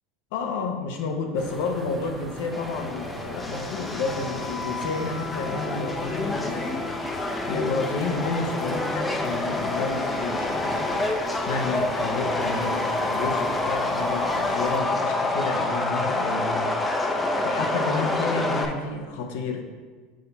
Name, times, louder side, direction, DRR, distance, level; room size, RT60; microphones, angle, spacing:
voice 1, 0.3-11.1 11.5-16.7 17.4-19.6, left 4 dB, 70° left, 4 dB, 0.8 m, -30 dB
sound 1, 1.4-14.8, right 2 dB, 15° right, 0.8 m, -42 dB
Subway metro underground, 2.5-18.7, left 2 dB, 15° left, 0.7 m, -27 dB
6.3 x 2.8 x 5.4 m, 1.5 s
hypercardioid pair, 95°, 0 cm